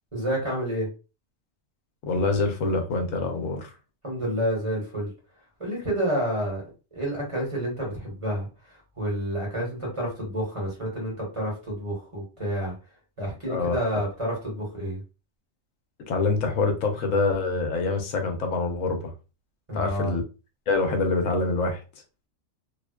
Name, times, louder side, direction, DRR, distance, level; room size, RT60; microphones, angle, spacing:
voice 1, 0.1-0.9 4.0-5.1 5.6-6.6 6.9-12.7 13.2-15.0 19.7-20.2, equal, 25° right, -4 dB, 1.0 m, -29 dB
voice 2, 2.0-3.7 13.5-13.8 16.1-19.1 19.7-20.2 20.7-21.8, left 3 dB, 80° left, 4 dB, 1.0 m, -25 dB
2.5 x 2.2 x 2.2 m, 0.32 s
omnidirectional pair, 1.3 m